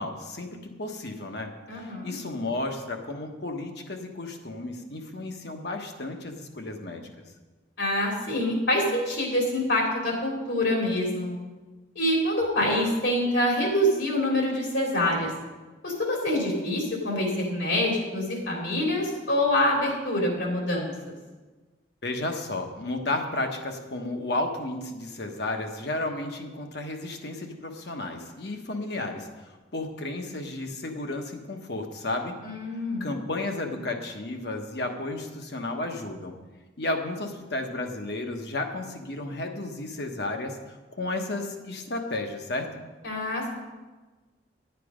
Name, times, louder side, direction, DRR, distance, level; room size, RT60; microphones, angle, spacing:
voice 1, 0.0-1.5 1.8-7.0 22.0-32.3 33.0-36.3 36.8-40.6 40.9-42.7, left 2 dB, 60° left, 4 dB, 1.2 m, -33 dB
voice 2, 1.7-2.1 7.8-11.3 11.9-15.3 15.8-21.1 32.4-33.1 43.0-43.5, left 1 dB, 75° left, -2 dB, 3.4 m, -26 dB
10.5 x 9.3 x 5.1 m, 1.2 s
head